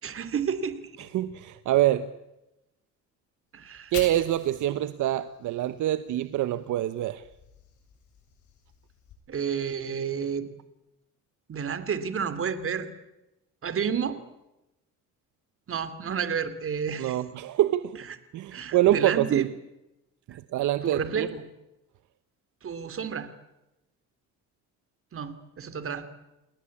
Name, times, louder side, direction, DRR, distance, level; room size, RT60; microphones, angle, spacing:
voice 1, 0.0-1.1 3.5-3.9 9.3-10.5 11.5-12.9 13.6-14.2 15.7-17.2 18.5-19.4 20.8-21.4 22.6-23.3 25.1-26.0, right 7 dB, 45° right, 2.9 m, -30 dB
voice 2, 1.0-2.1 3.9-7.2 17.0-18.0 18.3-19.5 20.5-21.3, right 13 dB, 75° right, 1.1 m, -25 dB
Fire, 3.6-6.7 7.1-9.1, left 6 dB, 70° left, 7.5 m, -46 dB
29.5 x 20.5 x 8.6 m
cardioid pair, 115°, 30 cm